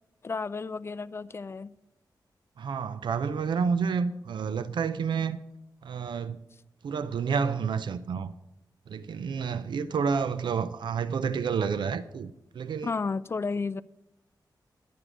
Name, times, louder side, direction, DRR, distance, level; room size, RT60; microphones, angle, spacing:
voice 1, 0.2-1.7 12.8-13.8, left 4 dB, 35° left, 0.4 m, -32 dB
voice 2, 2.6-5.4 5.8-6.4 6.8-8.3 8.9-12.9, right 6 dB, 90° right, 0.5 m, -29 dB
11.5 x 9.4 x 4.9 m
wide cardioid pair, 120°, 8 cm